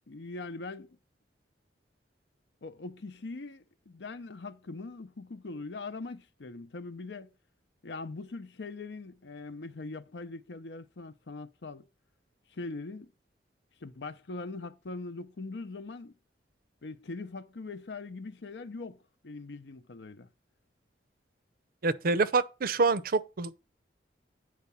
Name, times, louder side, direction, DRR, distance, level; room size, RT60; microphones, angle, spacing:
voice 1, 0.1-1.0 2.6-7.3 7.8-11.9 12.5-13.1 13.8-16.1 16.8-20.3, left 3 dB, 70° left, 0.7 m, -41 dB
voice 2, 21.8-23.5, right 3 dB, 55° right, 0.6 m, -26 dB
9.4 x 4.8 x 5.6 m
head